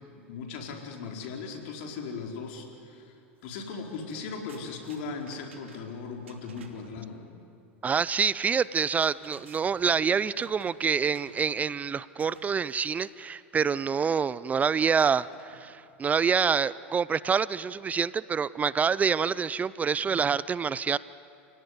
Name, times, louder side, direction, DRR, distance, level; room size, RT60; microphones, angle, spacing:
voice 1, 0.1-3.2 3.4-7.3, left 4 dB, 65° left, 2 dB, 4.5 m, -38 dB
sound 1, 3.4-3.6 3.9-7.0 8.6-11.8 12.2-13.2 15.0-15.9, right 5 dB, 90° right, 2.7 m, -54 dB
voice 2, 7.8-21.0, right 6 dB, 25° right, 19 dB, 0.5 m, -26 dB
29.5 x 17.5 x 9.6 m, 2.7 s
hypercardioid pair, 95°, 6 cm